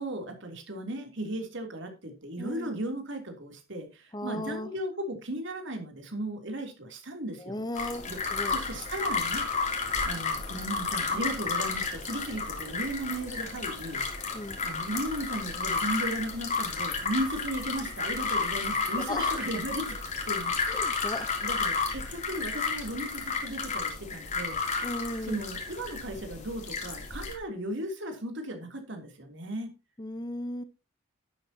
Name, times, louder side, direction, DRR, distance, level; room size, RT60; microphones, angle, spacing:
voice 1, 0.0-7.6 8.1-8.2 8.5-9.5 10.0-14.0 14.6-20.0 20.2-21.1 21.4-24.6 25.2-29.7, right 1 dB, 60° right, 4 dB, 3.3 m, -36 dB
voice 2, 2.4-2.8 4.1-4.7 7.4-8.0 8.3-8.6 14.3-14.6 19.0-19.4 20.7-21.5 24.8-25.4 30.0-30.6, left 1 dB, 20° left, 11 dB, 0.9 m, -36 dB
sound 1, 7.7-27.3, left 4 dB, 35° left, 3.1 m, -32 dB
11.5 x 11.5 x 2.9 m, 0.28 s
head